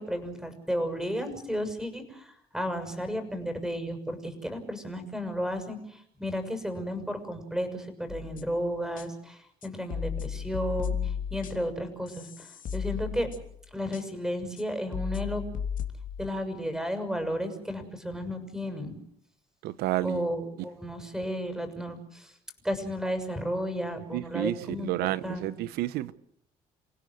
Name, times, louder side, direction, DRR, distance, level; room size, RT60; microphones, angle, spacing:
voice 1, 0.0-13.3 13.7-15.5 16.2-19.0 20.0-22.3 22.6-25.5, equal, 5° right, 6.8 m, -33 dB
sound 1, 8.1-8.6 9.0-9.1 9.6-11.8 12.1-13.6 13.9-14.0 14.6-14.7 14.9-16.3, left 7 dB, 60° left, 3.3 m, -34 dB
voice 2, 19.6-20.3 24.1-26.1, right 16 dB, 80° right, 1.1 m, -30 dB
29.0 x 16.5 x 7.9 m
supercardioid pair, 65°, 16 cm